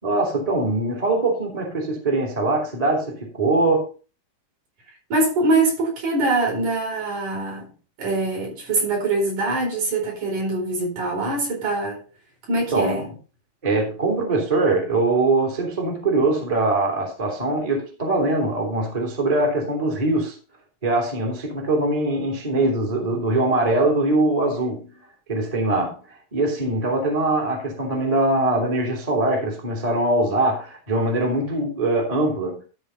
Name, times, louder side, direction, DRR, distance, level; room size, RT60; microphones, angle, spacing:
voice 1, 0.0-3.9 12.7-13.1 13.6-20.4 20.8-24.9 25.3-25.9 26.3-32.6, right 2 dB, 10° right, 2.4 m, -22 dB
voice 2, 5.1-7.7 8.0-12.0 12.5-13.1, right 2 dB, 55° right, 6.0 m, -23 dB
13.5 x 5.0 x 5.6 m
omnidirectional pair, 4.3 m